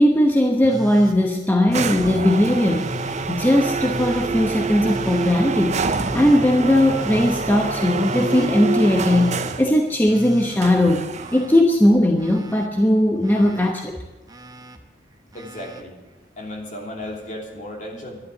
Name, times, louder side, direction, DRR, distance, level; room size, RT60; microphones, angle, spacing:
voice 1, 0.0-2.9 3.3-14.0, left 1 dB, 10° left, 2 dB, 1.0 m, -18 dB
Telephone, 0.6-1.2 1.7-2.2 2.7-3.3 3.8-4.3 4.8-5.4 5.9-6.4 6.9-7.5 8.0-8.5 9.0-9.6 10.1-11.6 11.9-12.7 13.2-13.7 14.3-14.8 15.3-15.8 17.0-17.1, left 1 dB, 20° right, 0.9 m, -36 dB
sound 1, 1.7-9.8 10.6-11.5, right 4 dB, 40° right, 0.7 m, -26 dB
voice 2, 15.3-15.9 16.4-18.2, left 1 dB, 45° left, 0 dB, 3.2 m, -34 dB
13.0 x 11.0 x 8.4 m, 1.1 s
head